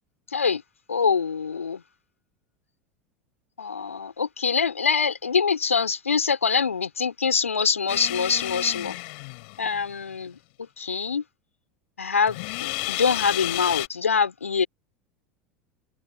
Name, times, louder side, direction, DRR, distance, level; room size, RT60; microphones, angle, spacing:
voice 1, 0.9-1.8 3.6-9.0 9.6-10.4 10.8-11.2 12.0-14.7, left 5 dB, 80° left, 4.1 m, -24 dB
sound 1, 7.9-9.9 12.3-13.9, left 30 dB, 55° left, 6.6 m, -31 dB
figure-of-eight pair, 80°, 7 cm